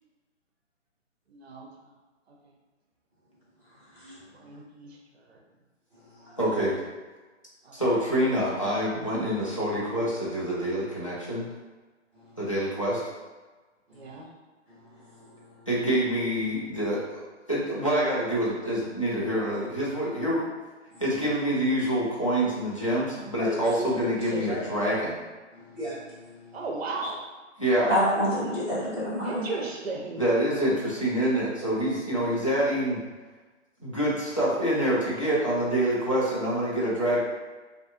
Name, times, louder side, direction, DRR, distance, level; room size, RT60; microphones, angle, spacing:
voice 1, 1.3-1.7 4.3-5.4 7.6-7.8 13.9-14.3 26.5-27.2 29.2-30.2, right 3 dB, 55° right, 0 dB, 0.6 m, -36 dB
voice 2, 6.4-6.8 7.7-11.5 12.4-13.0 15.7-17.2 17.5-20.4 21.0-25.2 27.6-27.9 30.2-33.0 33.8-37.2, right 1 dB, 30° left, -7 dB, 0.3 m, -26 dB
voice 3, 14.7-15.7 20.9-21.0 23.4-23.9 24.3-24.6 25.5-26.6 27.9-29.5, equal, ahead, -21 dB, 0.9 m, -31 dB
2.5 x 2.4 x 2.5 m, 1.3 s
hypercardioid pair, 165°, 37 cm